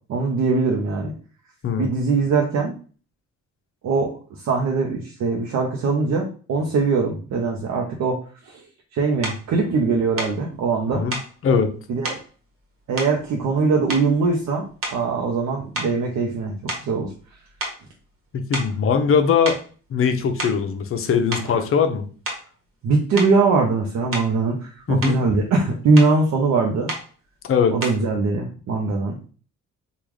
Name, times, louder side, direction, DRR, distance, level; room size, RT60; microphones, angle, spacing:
voice 1, 0.1-1.1 1.8-2.7 3.8-4.2 4.4-8.6 8.9-11.0 11.9-12.2 12.9-16.5 16.8-17.1 21.4-21.6 22.8-26.9 27.7-29.2, right 4 dB, 65° right, 0 dB, 0.7 m, -21 dB
sound 1, 9.2-9.4 10.2-10.4 11.1-11.3 12.0-12.3 13.0-13.6 13.9-14.3 14.8-15.2 15.7-17.3 17.6-17.8 18.5-18.8 19.5-19.7 20.2-20.7 21.3-21.5 22.3-22.5 23.2-23.4 24.1-24.4 24.8-25.2 26.0-26.2 26.9-27.1 27.8-28.1, right 2 dB, 45° right, 1.2 m, -31 dB
voice 2, 18.3-19.6 19.9-22.0 24.9-25.2 27.4-27.8, left 6 dB, 45° left, 7 dB, 0.6 m, -20 dB
3.6 x 2.4 x 3.1 m, 0.39 s
cardioid pair, 90°, 30 cm